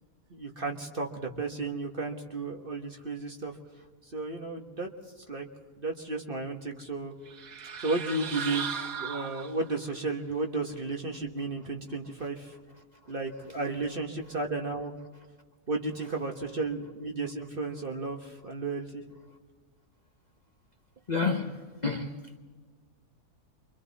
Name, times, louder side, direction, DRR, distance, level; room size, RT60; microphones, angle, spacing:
voice 1, 0.3-3.6 4.0-4.9 5.3-5.5 5.8-7.1 7.8-12.5 13.1-14.9 15.7-19.0, right 3 dB, 35° right, 1.6 m, -33 dB
sound 1, 7.3-9.9, right 7 dB, 65° right, 1.5 m, -37 dB
voice 2, 21.1-22.4, left 4 dB, 30° left, 1.1 m, -30 dB
28.5 x 24.5 x 4.2 m
omnidirectional pair, 1.7 m